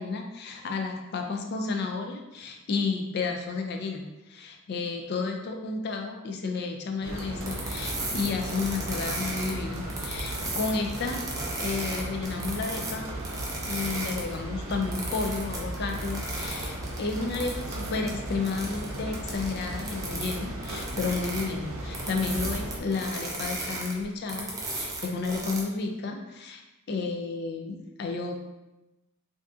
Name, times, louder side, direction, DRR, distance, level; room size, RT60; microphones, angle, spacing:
voice 1, 0.0-11.2 11.6-13.1 13.7-26.6 26.9-28.4, left 4 dB, 50° left, 4 dB, 0.4 m, -32 dB
sound 1, 7.0-22.8, right 1 dB, 70° right, 0.6 m, -36 dB
sound 2, 7.4-14.4 14.7-20.3 20.6-25.6, right 2 dB, 15° right, 0.4 m, -36 dB
3.5 x 2.6 x 2.4 m, 0.99 s
head